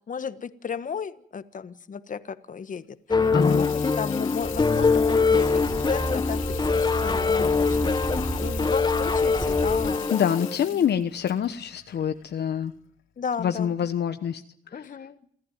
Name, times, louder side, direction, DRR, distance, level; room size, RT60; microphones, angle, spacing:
voice 1, 0.1-3.7 4.0-10.1 10.7-10.8 13.2-13.7 14.7-15.2, left 6 dB, 40° left, 12 dB, 1.4 m, -34 dB
Water tap faucet / Sink (filling or washing), 3.1-12.7, left 11 dB, 85° left, 2.5 m, -41 dB
sound 1, 3.1-10.6, left 4 dB, 20° left, 1.0 m, -23 dB
voice 2, 3.3-3.7 10.1-12.7 13.4-14.4 14.7-14.9, left 8 dB, 55° left, 9 dB, 1.1 m, -26 dB
sound 2, 4.4-9.9, right 1 dB, 20° right, 6.7 m, -32 dB
27.5 x 14.0 x 9.3 m, 0.67 s
cardioid pair, 90°, 20 cm